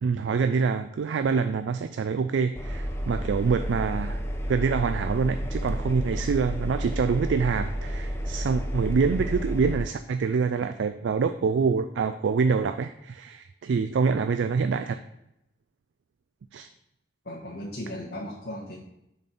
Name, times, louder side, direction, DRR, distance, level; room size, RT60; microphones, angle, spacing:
voice 1, 0.0-4.2 4.5-15.0 16.5-16.7, right 5 dB, 90° right, 10 dB, 0.4 m, -26 dB
Engine, 2.5-9.8, equal, 15° left, 0.7 m, -31 dB
voice 2, 17.2-18.8, left 1 dB, 60° left, -7 dB, 1.3 m, -36 dB
6.9 x 4.3 x 5.0 m, 0.84 s
head